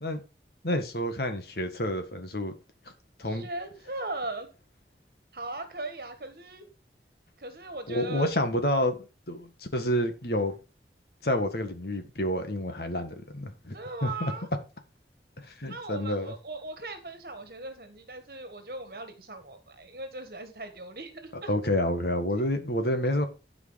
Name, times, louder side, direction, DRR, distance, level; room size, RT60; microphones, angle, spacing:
voice 1, 0.6-2.5 3.2-3.4 7.9-10.5 11.2-13.8 14.0-14.3 15.4-16.3 21.3-23.3, left 1 dB, 65° left, 1.7 m, -29 dB
voice 2, 3.3-4.5 5.3-6.6 7.4-8.3 13.7-14.5 15.7-21.5, right 2 dB, 55° right, 1.5 m, -39 dB
12.5 x 5.0 x 4.8 m
head